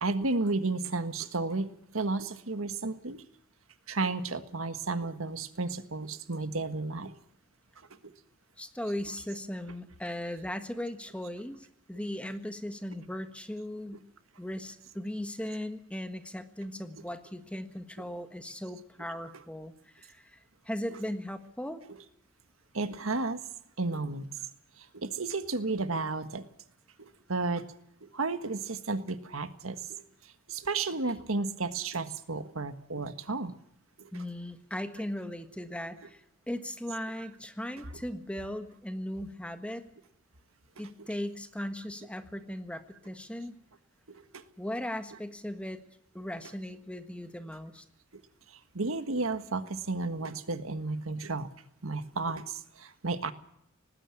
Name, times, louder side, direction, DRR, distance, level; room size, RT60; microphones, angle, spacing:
voice 1, 0.0-1.7 1.9-3.2 3.9-7.1 22.7-23.4 23.8-24.3 24.9-26.4 27.3-27.6 28.1-30.0 30.5-33.5 34.1-34.2 41.0-41.1 44.1-44.2 48.7-51.5 51.8-53.3, right 3 dB, 80° right, 10 dB, 1.6 m, -32 dB
voice 2, 8.6-14.0 14.4-20.4 20.6-21.8 34.1-39.8 40.8-43.5 44.6-45.8 46.1-47.8, left 1 dB, 5° left, 8 dB, 1.4 m, -38 dB
19.5 x 15.5 x 8.7 m, 0.79 s
head